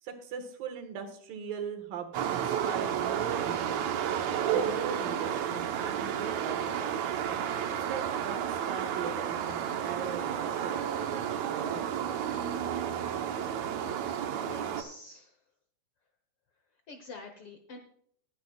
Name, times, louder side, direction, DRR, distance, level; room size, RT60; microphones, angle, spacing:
voice 1, 0.0-4.1 4.5-7.3 7.7-11.2 11.5-12.4, right 6 dB, 90° right, 6 dB, 3.2 m, -40 dB
sound 1, 2.1-14.8, right 9 dB, 70° right, 1.9 m, -31 dB
voice 2, 14.3-15.3 16.9-17.8, left 3 dB, 65° left, 5 dB, 1.4 m, -47 dB
19.0 x 10.0 x 2.3 m, 0.62 s
omnidirectional pair, 3.8 m